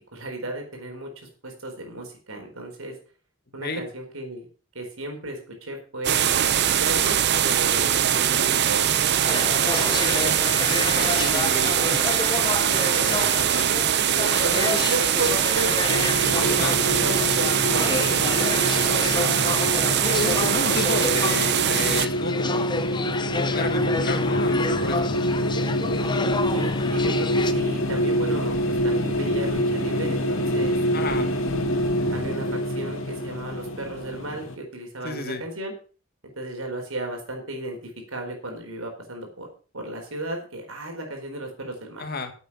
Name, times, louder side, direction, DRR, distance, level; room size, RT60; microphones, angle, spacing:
voice 1, 0.1-2.9 3.5-4.5 4.7-6.5 6.8-10.4 12.7-15.7 16.2-19.2 26.5-28.6 28.8-31.4 32.1-35.7 36.2-37.8 38.1-39.5 39.7-42.1, right 1 dB, 80° right, 3 dB, 4.4 m, -34 dB
sound 1, 6.0-22.1, right 9 dB, 55° right, 0.7 m, -22 dB
sound 2, 9.3-27.5, left 3 dB, 20° left, 0.7 m, -30 dB
voice 2, 10.8-11.8 16.5-16.8 20.0-22.7 23.3-25.1 30.9-31.3 35.0-35.4 42.0-42.3, left 3 dB, 50° left, 7 dB, 1.9 m, -31 dB
sound 3, 15.9-34.6, equal, 75° left, 2.2 m, -26 dB
9.9 x 8.3 x 6.0 m, 0.38 s
head